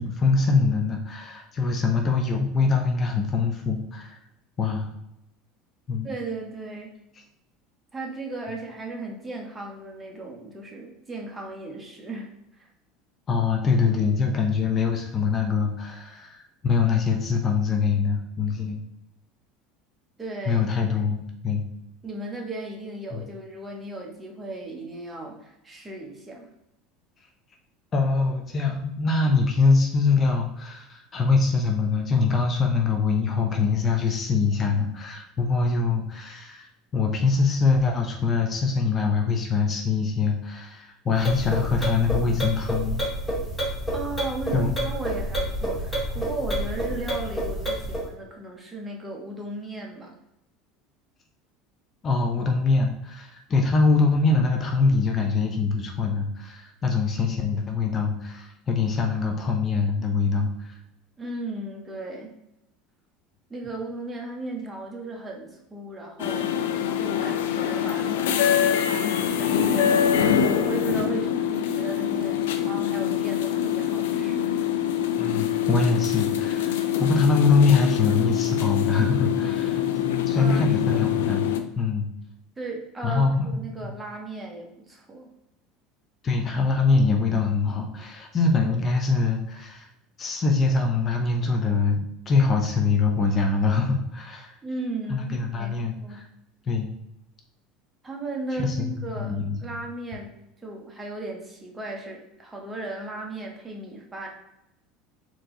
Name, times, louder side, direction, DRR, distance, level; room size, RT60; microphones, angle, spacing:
voice 1, 0.0-4.2 4.6-4.9 5.9-6.1 13.3-18.8 20.5-21.6 23.1-23.2 27.9-36.7 36.9-43.0 44.5-44.7 52.0-60.8 75.2-79.8 80.3-81.5 81.8-82.1 83.0-83.9 86.2-89.9 90.2-94.5 95.1-96.2 96.7-96.9 98.5-99.6, left 4 dB, 35° left, 3 dB, 0.7 m, -23 dB
voice 2, 6.0-6.9 7.9-12.3 12.6-12.7 20.2-20.6 22.0-26.5 43.9-50.2 61.2-62.3 63.5-66.6 67.0-74.6 80.3-81.0 82.6-85.3 94.6-96.2 98.0-99.3 99.6-104.3, right 2 dB, 15° right, -1 dB, 1.3 m, -36 dB
Car Turn-Signal Clanky-Metallic Plymouth-Acclaim, 41.1-48.1, right 1 dB, 10° left, 1.7 m, -29 dB
sound 1, 66.2-81.6, left 9 dB, 85° left, 0.4 m, -24 dB
4.5 x 3.0 x 3.8 m, 0.85 s
hypercardioid pair, 90°, 0 cm